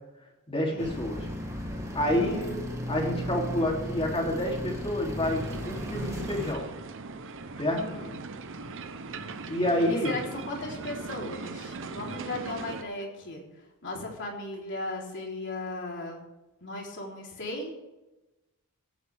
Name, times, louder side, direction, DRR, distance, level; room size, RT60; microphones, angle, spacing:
voice 1, 0.5-1.3 1.9-2.6 2.9-6.7 7.6-7.8 9.5-10.1, left 1 dB, 25° left, -1 dB, 3.1 m, -28 dB
Principe Pio pedestrians way, 0.8-6.5, equal, 15° right, 2.3 m, -35 dB
sound 1, 5.2-12.8, right 3 dB, 60° right, 1.0 m, -40 dB
voice 2, 7.7-8.1 9.9-13.4 13.8-16.2 16.6-17.7, left 2 dB, 55° left, -1 dB, 3.7 m, -36 dB
16.5 x 15.0 x 3.6 m, 1.0 s
head